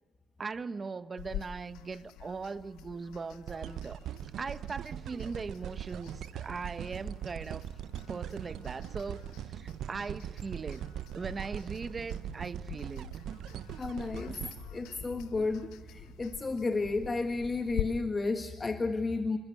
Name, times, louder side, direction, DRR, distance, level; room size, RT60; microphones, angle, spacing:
voice 1, 0.4-4.0 4.4-7.7 8.1-10.8 11.1-13.1, right 4 dB, 35° right, 1.0 m, -39 dB
sound 1, 1.2-17.8, left 13 dB, 90° left, 0.9 m, -46 dB
sound 2, 3.5-15.7 16.2-16.3, right 11 dB, 75° right, 0.6 m, -41 dB
sound 3, 5.0-17.6, right 6 dB, 60° right, 6.5 m, -54 dB
voice 2, 13.8-14.4 14.7-19.4, left 3 dB, 30° left, 1.5 m, -32 dB
28.5 x 14.0 x 9.1 m
supercardioid pair, 75°, 0 cm